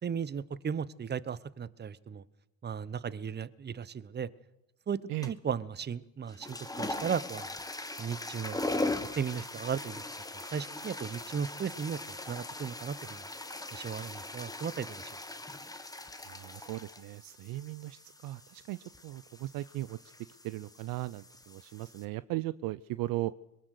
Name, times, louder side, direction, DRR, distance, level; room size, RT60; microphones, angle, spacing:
voice 1, 0.0-2.2 2.6-4.3 4.9-5.0 5.3-7.5 8.0-8.6 9.2-10.0 10.5-13.3 13.7-15.1, right 7 dB, 25° right, 19 dB, 0.9 m, -36 dB
sound 1, 5.2-5.6 6.2-22.0, left 2 dB, 10° left, 1.6 m, -40 dB
voice 2, 16.2-20.0 20.4-23.3, right 17 dB, 50° right, 17 dB, 0.6 m, -37 dB
22.0 x 19.0 x 6.5 m, 0.94 s
hypercardioid pair, 65°, 43 cm